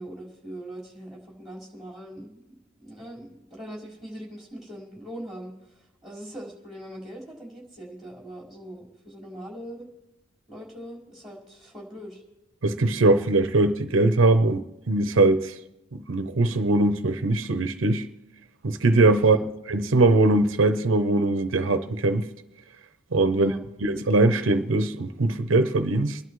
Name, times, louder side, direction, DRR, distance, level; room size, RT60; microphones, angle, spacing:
voice 1, 0.0-9.9 10.5-12.2 19.1-19.5 23.3-23.6, right 1 dB, ahead, 4.7 m, -41 dB
voice 2, 12.6-15.5 15.9-18.1 18.6-19.4 19.7-22.3 23.1-23.5 23.8-26.2, right 2 dB, 85° right, 0.7 m, -21 dB
26.5 x 11.5 x 3.1 m
head